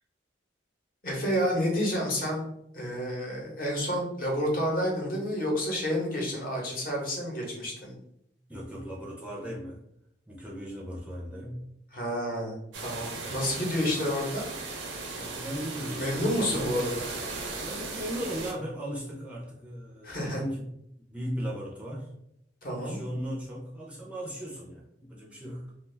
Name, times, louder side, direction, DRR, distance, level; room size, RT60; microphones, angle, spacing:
voice 1, 1.0-2.4 2.7-7.9 11.9-14.5 16.0-17.0 20.0-20.4 22.6-23.0, equal, 50° left, -2 dB, 0.8 m, -29 dB
voice 2, 8.5-9.8 10.3-11.6 12.9-13.4 15.1-16.7 17.6-20.7 21.1-22.1 22.7-25.7, equal, 5° right, -4 dB, 0.4 m, -37 dB
sound 1, 12.7-18.5, right 3 dB, 80° right, 0.5 m, -37 dB
2.3 x 2.2 x 3.2 m, 0.77 s
head